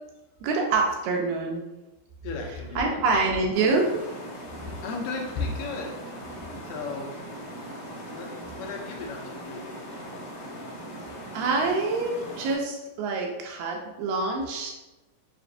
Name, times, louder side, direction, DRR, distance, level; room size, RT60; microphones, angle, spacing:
voice 1, 0.4-1.6 2.8-4.1 11.3-14.7, right 3 dB, 80° right, 1 dB, 2.2 m, -26 dB
voice 2, 2.2-3.0 4.6-6.0 6.7-7.1 8.1-8.3 8.5-9.8, left 3 dB, 80° left, 1 dB, 2.0 m, -34 dB
sound 1, 3.5-12.6, equal, 65° left, 1.9 m, -40 dB
5.8 x 2.5 x 2.6 m, 1.0 s
omnidirectional pair, 4.1 m